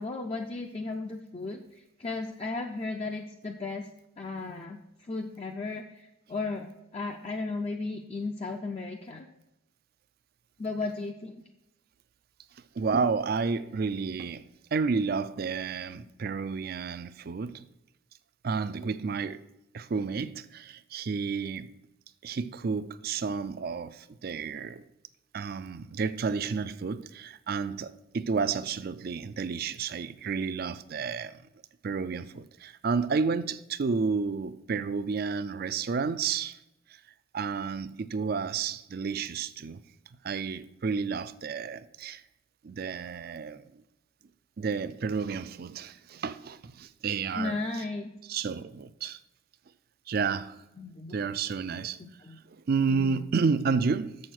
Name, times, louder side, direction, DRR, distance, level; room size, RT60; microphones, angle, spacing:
voice 1, 0.0-3.9 4.2-9.3 10.6-11.4 47.4-48.1 50.8-51.2 51.7-52.4 52.9-53.2, left 3 dB, 30° left, 0.4 m, -35 dB
voice 2, 12.8-14.4 14.7-17.6 18.4-19.4 19.7-21.7 22.2-24.8 25.3-31.4 31.8-36.6 37.3-39.8 40.2-42.2 42.6-43.6 44.6-47.6 48.3-49.2 50.1-50.6 51.1-52.0 52.5-54.2, right 5 dB, 45° right, 0.4 m, -31 dB
7.0 x 6.4 x 5.9 m
head